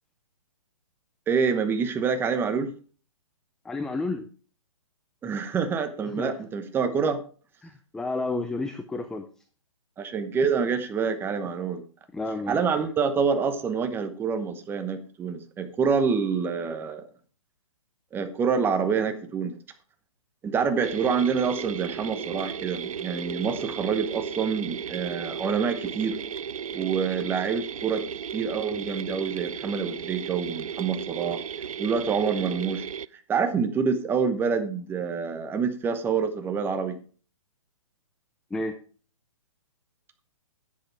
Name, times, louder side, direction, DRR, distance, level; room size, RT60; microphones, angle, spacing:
voice 1, 1.3-2.7 5.2-7.2 10.0-11.8 12.5-17.0 18.1-19.5 20.4-26.2 26.7-28.0 28.3-31.4 31.8-32.8 33.1-37.0, right 6 dB, 10° right, 9 dB, 1.0 m, -27 dB
voice 2, 3.6-4.3 6.1-6.3 7.6-9.2 12.1-12.6 38.5-38.7, left 2 dB, 5° left, 8 dB, 0.5 m, -31 dB
sound 1, 20.8-33.1, right 7 dB, 85° right, 0.4 m, -35 dB
10.5 x 8.0 x 4.7 m, 0.41 s
hypercardioid pair, 140°, 17 cm